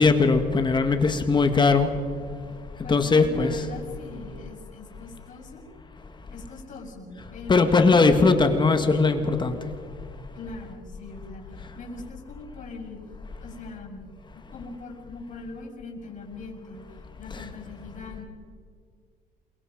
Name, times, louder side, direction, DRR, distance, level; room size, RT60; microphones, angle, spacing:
voice 1, 0.0-1.9 2.9-3.6 7.5-9.6, left 4 dB, 25° left, 7 dB, 1.9 m, -20 dB
voice 2, 2.8-5.6 6.3-8.6 10.3-13.0 13.4-14.1 14.3-16.8 17.2-18.3, left 3 dB, 50° left, 0 dB, 6.7 m, -41 dB
28.5 x 23.5 x 5.2 m, 2.1 s
cardioid pair, 110°, 17 cm